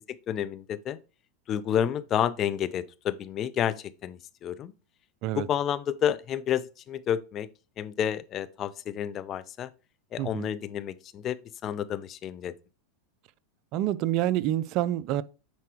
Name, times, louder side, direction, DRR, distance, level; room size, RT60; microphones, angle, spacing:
voice 1, 0.1-1.0 1.5-3.7 4.0-4.7 5.3-7.5 7.8-9.7 10.1-11.4 11.6-12.5, left 9 dB, 40° left, 0.6 m, -30 dB
voice 2, 10.2-10.5 13.7-15.2, right 13 dB, 50° right, 0.4 m, -27 dB
9.4 x 4.4 x 3.0 m
hypercardioid pair, 100°, 0 cm